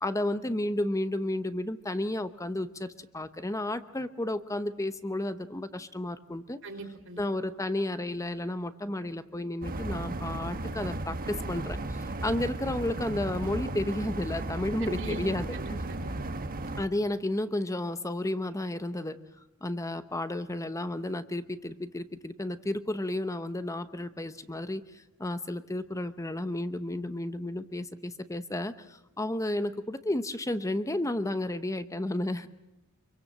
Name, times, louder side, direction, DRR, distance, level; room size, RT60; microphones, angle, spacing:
voice 1, 0.0-6.6 7.2-15.8 16.8-19.2 19.6-32.5, left 1 dB, 15° left, 11 dB, 0.8 m, -32 dB
voice 2, 6.6-7.2 14.8-15.2 15.5-16.3, right 2 dB, 60° right, 4 dB, 4.3 m, -41 dB
sound 1, 9.6-16.9, right 2 dB, 40° right, 1.3 m, -35 dB
25.5 x 24.0 x 7.5 m, 0.88 s
head